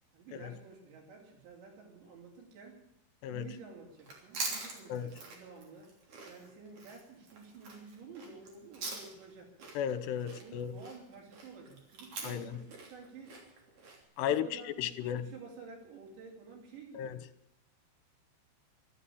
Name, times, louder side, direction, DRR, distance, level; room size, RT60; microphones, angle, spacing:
voice 1, 0.1-2.8 3.3-6.0 6.3-9.6 10.2-13.4 14.2-17.3, right 4 dB, 80° right, -2 dB, 5.3 m, -51 dB
Chewing mastication, 4.0-9.3 9.6-14.0, right 3 dB, 50° right, 4.4 m, -44 dB
voice 2, 9.8-10.7 12.2-12.4 14.2-14.5 14.8-15.2 16.9-17.2, left 9 dB, 80° left, 12 dB, 2.9 m, -34 dB
14.0 x 12.0 x 8.6 m, 0.77 s
omnidirectional pair, 5.1 m